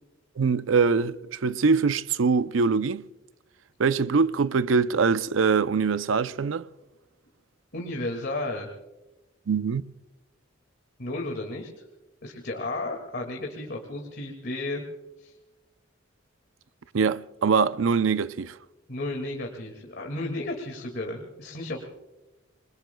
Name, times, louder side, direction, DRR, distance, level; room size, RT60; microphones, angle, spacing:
voice 1, 0.4-3.0 3.8-6.7 9.5-9.8 16.9-18.5, right 5 dB, 75° right, 0.5 m, -23 dB
voice 2, 7.7-8.7 11.0-11.9 12.2-14.8 15.2-15.4 18.9-21.8, left 2 dB, 55° left, 2.1 m, -33 dB
28.0 x 21.5 x 2.3 m
head